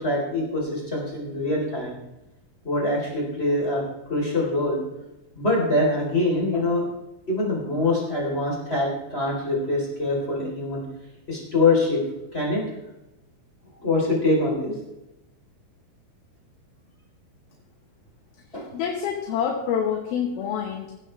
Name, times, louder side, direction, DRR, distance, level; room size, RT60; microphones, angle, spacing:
voice 1, 0.0-2.0 2.6-3.8 4.1-4.8 5.3-6.8 7.3-10.8 11.3-12.0 12.3-12.6 13.8-14.7 18.5-18.7, left 2 dB, 15° left, -3 dB, 3.5 m, -24 dB
voice 2, 18.7-20.9, left 7 dB, 70° left, 2 dB, 2.9 m, -27 dB
16.0 x 12.0 x 3.3 m, 0.93 s
omnidirectional pair, 4.9 m